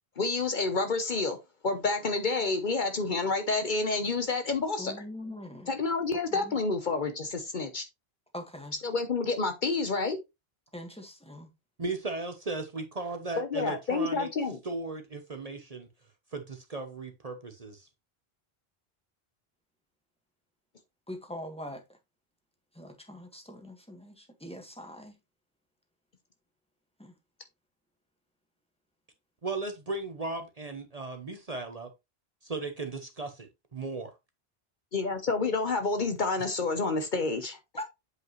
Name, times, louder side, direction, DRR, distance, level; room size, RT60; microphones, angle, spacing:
voice 1, 0.2-1.4 1.6-4.9 5.7-7.8 8.8-10.2 13.4-14.6 34.9-37.6, left 3 dB, 50° left, 1.0 m, -29 dB
voice 2, 4.8-5.7 6.3-6.6 8.3-8.7 10.7-11.5 21.1-21.8 22.7-25.2 27.0-27.1 37.8-37.9, left 1 dB, 5° left, 1.5 m, -42 dB
voice 3, 11.8-14.3 14.6-15.9 16.3-17.9 29.4-31.9 32.4-34.1, right 3 dB, 40° right, 0.9 m, -36 dB
7.9 x 5.3 x 3.0 m
omnidirectional pair, 1.0 m